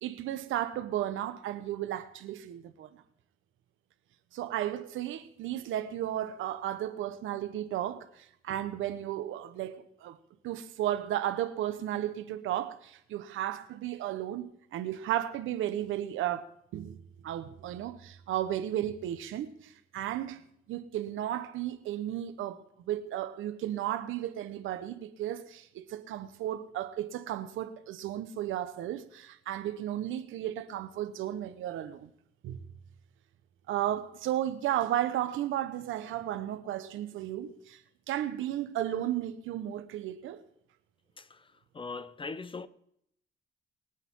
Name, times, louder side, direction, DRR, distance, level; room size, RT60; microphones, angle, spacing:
voice 1, 0.0-3.0 4.3-10.2 10.4-20.4 20.7-32.1 32.4-32.6 33.7-37.8 38.1-40.4, right 12 dB, 85° right, 1.2 m, -34 dB
voice 2, 41.2-41.5 41.7-42.7, left 4 dB, 25° left, 0.8 m, -40 dB
23.5 x 9.1 x 3.8 m
cardioid pair, 90°, 20 cm